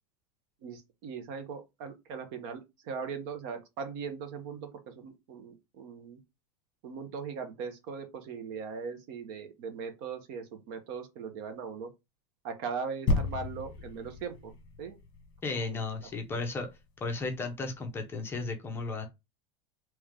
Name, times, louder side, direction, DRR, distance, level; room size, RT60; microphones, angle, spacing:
voice 1, 0.6-6.2 6.8-11.9 12.4-14.5 14.8-15.0 15.6-15.8, right 5 dB, 55° right, 0.9 m, -39 dB
sound 1, 13.1-16.7 17.3-17.4, left 2 dB, 30° left, 1.2 m, -33 dB
voice 2, 15.4-16.7 17.0-19.1, left 3 dB, 15° left, 0.6 m, -34 dB
3.4 x 3.1 x 3.6 m
supercardioid pair, 160°, 15 cm